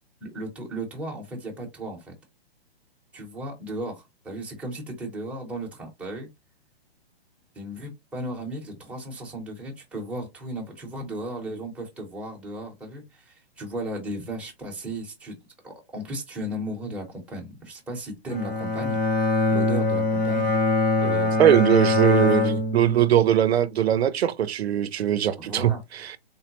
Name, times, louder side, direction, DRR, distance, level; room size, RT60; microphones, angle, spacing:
voice 1, 0.2-2.1 3.1-6.3 7.5-15.4 15.6-19.0 19.5-21.7 22.1-22.6 25.4-25.8, right 1 dB, 5° right, 0.8 m, -35 dB
Bowed string instrument, 18.3-23.5, left 2 dB, 70° left, 1.8 m, -23 dB
voice 2, 21.4-22.4 22.7-26.2, right 10 dB, 75° right, 0.6 m, -21 dB
3.6 x 2.1 x 2.9 m
hypercardioid pair, 140°, 32 cm